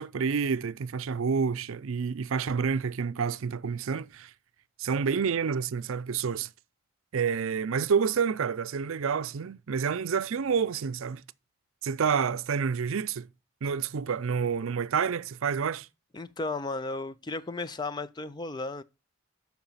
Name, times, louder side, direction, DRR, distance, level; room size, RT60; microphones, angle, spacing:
voice 1, 0.0-4.3 4.8-6.5 7.1-11.2 11.8-13.3 13.6-15.9, right 6 dB, 75° right, 0.5 m, -28 dB
voice 2, 16.1-18.8, left 3 dB, 20° left, 0.4 m, -34 dB
8.8 x 6.0 x 5.6 m
head